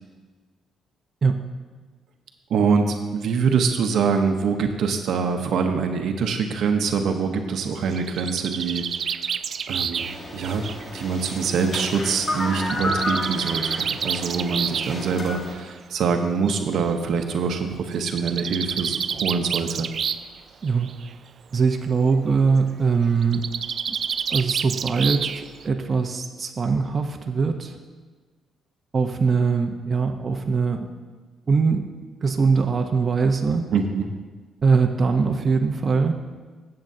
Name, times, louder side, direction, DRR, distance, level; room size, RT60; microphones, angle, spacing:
voice 1, 2.5-9.1 9.7-10.6 10.9-19.9 33.7-34.1, right 5 dB, 70° right, 5 dB, 0.8 m, -24 dB
Bird, 7.7-11.5 12.6-15.0 16.0-16.1 16.5-16.6 16.8-16.9 18.0-20.4 20.7-21.1 23.2-25.7, right 7 dB, 55° right, 0.3 m, -29 dB
sound 1, 10.0-15.5, left 1 dB, 30° left, 1.7 m, -31 dB
voice 2, 21.5-23.4 24.3-27.8 28.9-30.9 31.5-31.8 32.2-33.7 34.6-36.1, right 5 dB, 40° right, 3 dB, 0.7 m, -22 dB
15.0 x 7.7 x 2.7 m, 1.4 s
cardioid pair, 90°, 0 cm